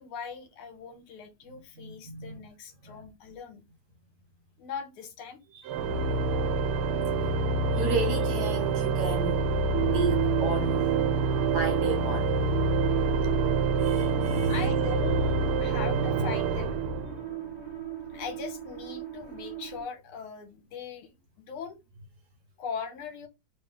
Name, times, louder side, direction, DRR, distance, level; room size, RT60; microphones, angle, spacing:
voice 1, 0.0-3.6 4.6-5.4 14.5-15.3 15.6-16.8 18.1-21.1 21.4-21.8 22.6-23.3, left 6 dB, 85° left, 1.8 m, -40 dB
voice 2, 1.8-2.4 2.9-3.0 5.5-5.6 7.7-9.5 9.9-10.9 11.5-12.3 13.7-14.7 15.2-15.3 15.6-15.8, right 2 dB, 65° right, 1.1 m, -33 dB
Organ, 5.7-17.5, right 3 dB, 85° right, 1.6 m, -27 dB
sound 1, 9.7-19.8, right 12 dB, 25° right, 0.6 m, -33 dB
3.2 x 2.9 x 3.6 m
omnidirectional pair, 2.4 m